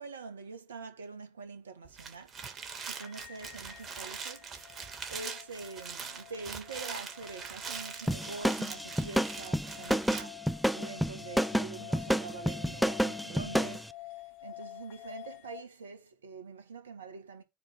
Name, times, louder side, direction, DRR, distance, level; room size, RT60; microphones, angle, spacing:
voice 1, 0.0-4.5 4.8-14.1 14.4-17.4, right 4 dB, 85° right, 1.6 m, -45 dB
sound 1, 1.8-10.2, right 6 dB, 45° right, 3.1 m, -42 dB
sound 2, 3.0-15.6, left 17 dB, 60° left, 1.6 m, -49 dB
sound 3, 8.1-13.8, equal, ahead, 0.8 m, -29 dB
9.7 x 3.5 x 5.9 m
hypercardioid pair, 65°, 0 cm